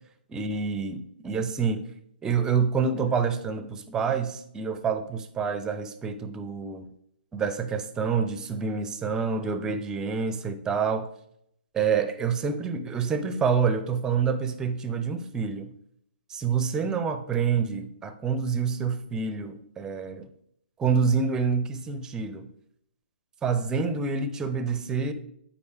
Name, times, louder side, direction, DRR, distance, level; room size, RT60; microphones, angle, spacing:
voice 1, 0.3-1.8 2.2-6.9 7.3-11.1 11.7-15.7 16.3-20.3 20.8-22.5 23.4-25.1, right 5 dB, 10° right, 0.6 m, -27 dB
8.5 x 4.2 x 4.6 m
figure-of-eight pair, 130°, 6 cm